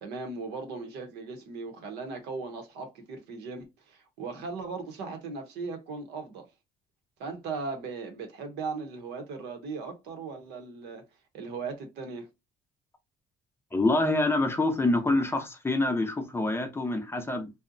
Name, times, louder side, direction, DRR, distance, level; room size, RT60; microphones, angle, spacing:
voice 1, 0.0-6.5 7.2-11.0 11.3-12.3, right 4 dB, 85° right, 0.8 m, -38 dB
voice 2, 13.7-17.5, left 2 dB, 15° left, 0.5 m, -26 dB
2.7 x 2.0 x 2.5 m
cardioid pair, 110°, 17 cm